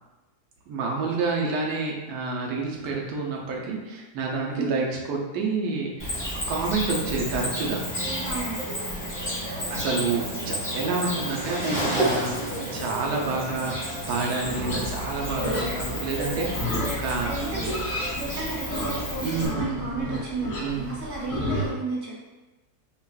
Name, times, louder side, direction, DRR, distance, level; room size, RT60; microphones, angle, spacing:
voice 1, 0.7-6.2 6.5-7.8 9.7-17.4 19.2-20.2 20.6-21.0, right 4 dB, 70° right, -1 dB, 1.2 m, -29 dB
Cricket, 6.0-19.5, equal, 10° left, 1.1 m, -31 dB
voice 2, 8.0-8.7 15.9-16.0 17.2-22.3, right 3 dB, 50° right, -5 dB, 1.1 m, -33 dB
Livestock farm animals working animals, 14.4-21.7, left 1 dB, 55° left, 1.2 m, -32 dB
5.5 x 2.4 x 2.4 m, 1.1 s
omnidirectional pair, 1.8 m